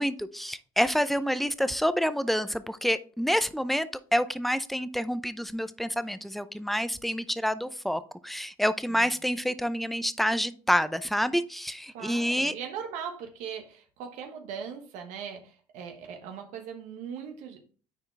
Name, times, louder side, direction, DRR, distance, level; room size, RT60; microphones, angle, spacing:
voice 1, 0.0-12.5, equal, ahead, 13 dB, 0.5 m, -28 dB
voice 2, 11.9-17.6, right 7 dB, 80° right, 4 dB, 1.3 m, -39 dB
9.6 x 4.5 x 3.4 m, 0.41 s
supercardioid pair, 90°, 13 cm